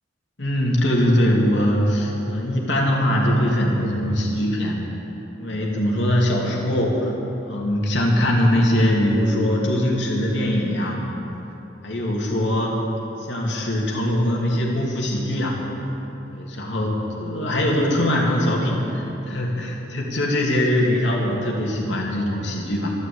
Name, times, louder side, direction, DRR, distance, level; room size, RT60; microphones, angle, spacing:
voice 1, 0.4-4.8 5.3-7.1 7.4-11.0 11.8-12.8 13.2-15.6 16.3-22.9, left 1 dB, 75° left, -2 dB, 2.8 m, -22 dB
13.5 x 12.5 x 8.0 m, 3.0 s
head